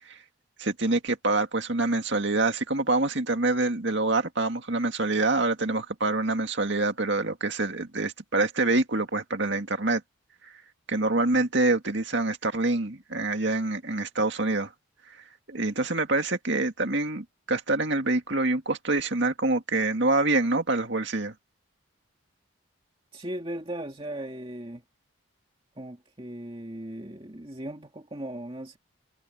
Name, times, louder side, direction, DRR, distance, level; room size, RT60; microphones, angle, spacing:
voice 1, 0.6-10.0 10.4-10.5 10.9-14.7 15.5-21.3, right 2 dB, 55° right, 2.2 m, -26 dB
voice 2, 23.1-24.8 25.8-28.8, right 1 dB, 25° right, 2.1 m, -37 dB
head